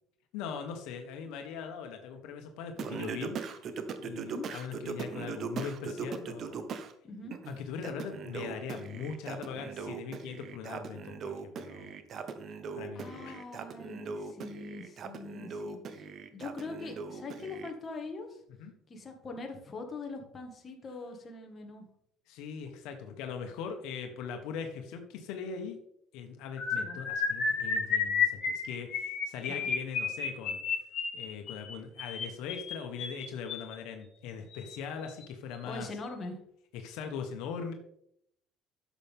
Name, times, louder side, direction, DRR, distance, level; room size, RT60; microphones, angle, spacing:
voice 1, 0.3-3.4 4.0-6.7 7.5-11.9 12.7-13.4 18.6-18.7 22.3-25.8 26.1-30.6 31.1-35.9 36.7-37.7, left 6 dB, 75° left, 4 dB, 1.3 m, -40 dB
Singing, 2.8-6.9 7.3-17.7, right 5 dB, 45° right, 1.0 m, -40 dB
voice 2, 7.0-7.4 13.0-18.4 18.9-21.9 26.8-27.0 29.5-29.7 35.6-36.4, left 3 dB, 30° left, 3 dB, 1.9 m, -42 dB
sound 1, 26.6-33.7 34.5-34.7 35.0-35.2 35.5-35.7, left 5 dB, 50° left, 2.9 m, -32 dB
11.5 x 7.2 x 3.7 m, 0.71 s
cardioid pair, 125°, 0 cm